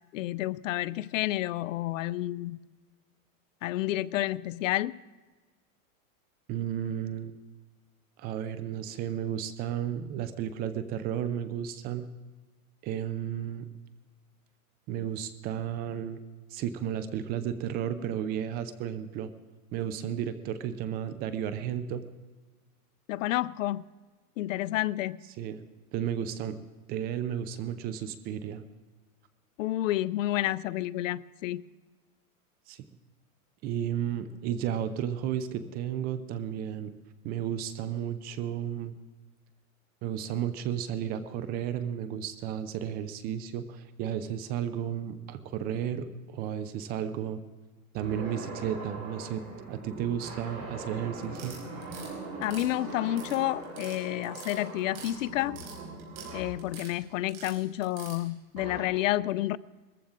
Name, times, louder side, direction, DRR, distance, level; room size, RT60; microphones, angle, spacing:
voice 1, 0.1-2.6 3.6-5.0 23.1-23.8 24.4-25.2 29.6-31.6 52.4-55.6 56.3-59.6, left 15 dB, 65° left, 0.5 m, -30 dB
voice 2, 6.5-7.3 8.2-12.1 12.8-13.7 14.9-16.2 16.5-19.3 19.7-22.0 25.4-25.6 25.9-26.6 26.9-28.6 32.7-32.8 33.6-36.9 37.2-39.0 40.0-47.4 47.9-49.4 49.7-51.6, right 9 dB, 25° right, 0.5 m, -33 dB
sound 1, 48.0-56.6 58.6-58.8, right 2 dB, 40° right, 5.9 m, -41 dB
sound 2, 51.2-52.1 52.4-53.4 53.6-54.0 54.2-55.1 55.4-56.3 56.6-56.9 57.3-58.2, right 7 dB, 55° right, 5.3 m, -46 dB
19.5 x 14.5 x 3.8 m
supercardioid pair, 145°, 43 cm